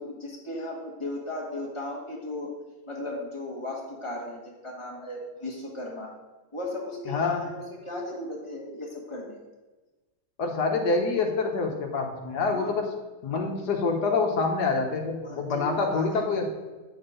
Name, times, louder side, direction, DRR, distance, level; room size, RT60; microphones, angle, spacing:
voice 1, 0.0-2.5 2.9-6.1 6.5-9.4 12.5-12.7 15.2-16.2, left 1 dB, 20° left, -3 dB, 1.3 m, -36 dB
voice 2, 7.1-7.4 10.4-12.8 13.2-16.5, left 4 dB, 65° left, 3 dB, 1.5 m, -26 dB
8.7 x 4.3 x 5.0 m, 1.2 s
omnidirectional pair, 2.0 m